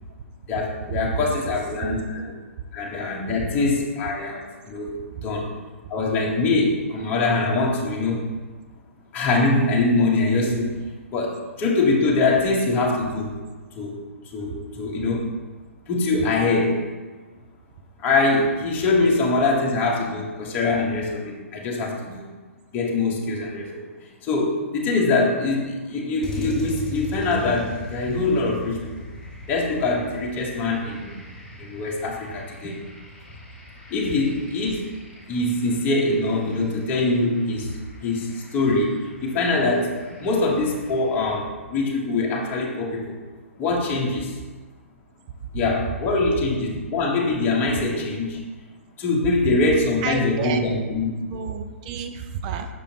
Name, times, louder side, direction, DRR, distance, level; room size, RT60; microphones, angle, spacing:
voice 1, 0.5-2.3 2.7-4.4 4.7-5.5 5.9-8.3 9.1-10.8 11.1-13.4 13.7-14.0 14.3-15.3 15.9-16.9 18.0-22.3 22.7-23.9 24.2-29.0 29.5-31.1 31.6-32.8 33.9-34.8 35.3-37.7 38.0-43.2 43.6-44.3 45.5-48.4 49.0-51.1, left 3 dB, 25° left, -2 dB, 1.2 m, -23 dB
sound 1, 26.2-41.3, equal, 10° left, 2.0 m, -40 dB
voice 2, 50.0-50.6 51.3-52.7, right 7 dB, 35° right, 7 dB, 0.5 m, -31 dB
6.8 x 6.2 x 2.9 m, 1.3 s
figure-of-eight pair, 120°, 8 cm